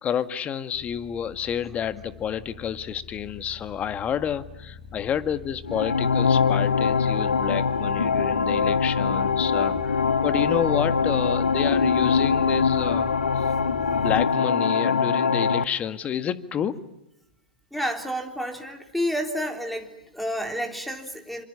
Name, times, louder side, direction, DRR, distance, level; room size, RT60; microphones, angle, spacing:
voice 1, 0.0-13.1 13.3-13.4 13.9-16.8, left 8 dB, 25° left, 12 dB, 1.7 m, -29 dB
sound 1, 0.7-14.2, left 5 dB, 40° left, 4.4 m, -43 dB
sound 2, 5.6-15.6, left 5 dB, 90° left, 1.1 m, -23 dB
voice 2, 17.7-21.4, equal, ahead, 6 dB, 3.7 m, -30 dB
27.5 x 26.5 x 6.9 m, 0.87 s
hypercardioid pair, 110°, 5 cm